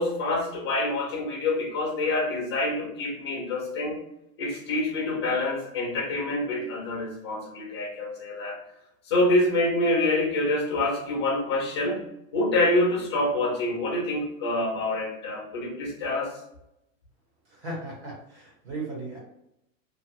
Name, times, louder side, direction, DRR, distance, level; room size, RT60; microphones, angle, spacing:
voice 1, 0.0-4.0 4.4-8.6 9.1-12.0 12.3-16.3, left 2 dB, 25° left, -3 dB, 0.3 m, -26 dB
voice 2, 17.5-19.2, right 2 dB, 55° right, -4 dB, 1.4 m, -36 dB
2.6 x 2.5 x 2.9 m, 0.83 s
supercardioid pair, 175°, 40 cm